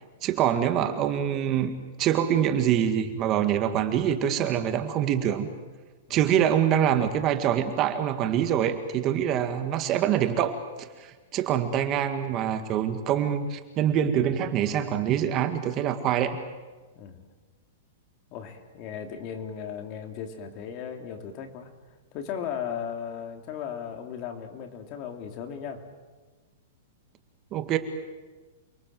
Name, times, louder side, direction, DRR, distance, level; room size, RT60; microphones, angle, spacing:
voice 1, 0.2-5.5 6.1-16.4 27.5-27.8, right 9 dB, 30° right, 8 dB, 1.9 m, -25 dB
voice 2, 16.9-17.3 18.3-21.7 22.1-25.9, left 8 dB, 35° left, 5 dB, 3.1 m, -36 dB
28.5 x 22.5 x 7.8 m, 1.3 s
hypercardioid pair, 150°, 0 cm